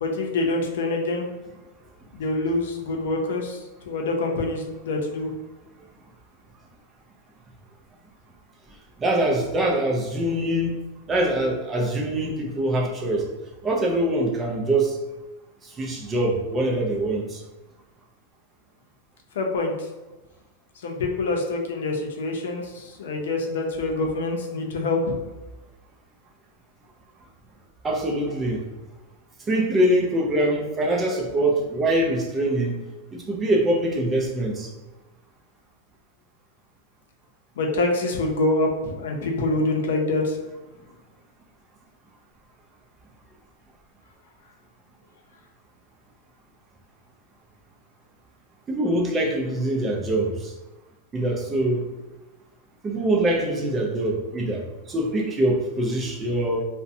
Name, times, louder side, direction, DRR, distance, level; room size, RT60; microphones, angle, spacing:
voice 1, 0.0-1.3 2.1-5.3 19.4-19.7 20.8-25.2 37.6-40.4, left 2 dB, 85° left, 1 dB, 0.5 m, -25 dB
voice 2, 9.0-10.8 11.1-13.3 13.6-15.0 15.8-17.4 27.8-28.6 29.5-32.8 33.1-34.7 48.7-50.5 51.1-51.8 52.8-56.6, right 1 dB, 15° right, 0 dB, 0.3 m, -24 dB
2.5 x 2.1 x 2.6 m, 1.1 s
supercardioid pair, 165°, 0 cm